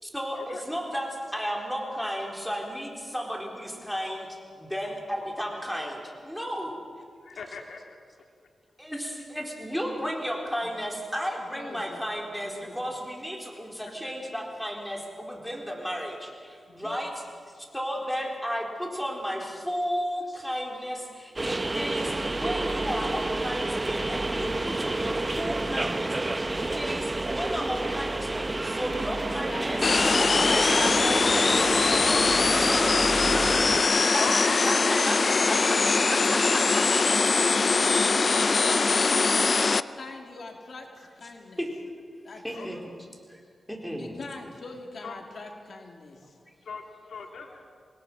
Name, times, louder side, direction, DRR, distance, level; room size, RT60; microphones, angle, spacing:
voice 1, 0.0-6.7 8.8-17.1 17.7-29.8 30.3-31.5 32.9-33.0 34.1-34.4 34.7-35.7 36.1-36.7 41.6-41.7 42.4-42.9 43.3-43.4 43.7-44.2 47.5-47.6, equal, ahead, -1 dB, 4.3 m, -34 dB
voice 2, 7.2-7.8 11.2-11.4 14.0-14.1 34.2-35.7 36.1-36.2 36.9-37.0 37.3-37.4 38.2-38.7 42.5-42.7 45.0-45.2 46.7-46.8 47.1-47.6, left 4 dB, 90° left, 3 dB, 2.1 m, -38 dB
voice 3, 11.4-12.0 12.4-13.0 16.7-17.0 17.5-17.7 29.0-33.6 34.0-34.5 36.6-37.6 38.1-41.6 42.2-42.7 44.0-46.4, left 3 dB, 60° left, 2 dB, 2.5 m, -41 dB
sound 1, 21.4-33.8, right 2 dB, 25° right, 0.8 m, -29 dB
sound 2, 29.8-39.8, left 4 dB, 45° left, 0.5 m, -22 dB
26.5 x 20.0 x 6.2 m, 2.1 s
wide cardioid pair, 85°, 0 cm